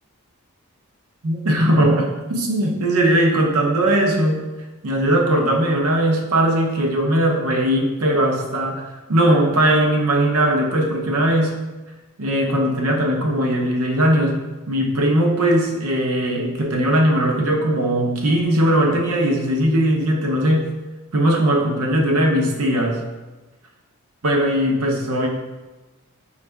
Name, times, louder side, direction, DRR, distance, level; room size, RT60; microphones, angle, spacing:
voice 1, 1.2-4.5 4.8-11.6 12.2-14.4 14.7-20.7 21.1-23.0 24.2-25.3, right 1 dB, 75° right, 2 dB, 0.7 m, -19 dB
5.2 x 2.4 x 3.4 m, 1.1 s
head